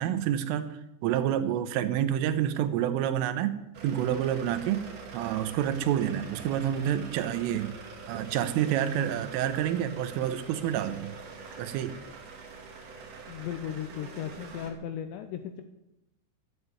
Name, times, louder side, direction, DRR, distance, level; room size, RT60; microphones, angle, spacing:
voice 1, 0.0-3.6 3.8-4.8 5.1-7.7 8.1-11.1 11.6-12.0, right 10 dB, 80° right, 11 dB, 3.4 m, -28 dB
sound 1, 3.7-14.7, right 4 dB, 50° right, 3.1 m, -45 dB
voice 2, 13.3-15.6, left 9 dB, 85° left, 8 dB, 2.6 m, -36 dB
11.5 x 9.4 x 9.6 m, 0.91 s
omnidirectional pair, 5.9 m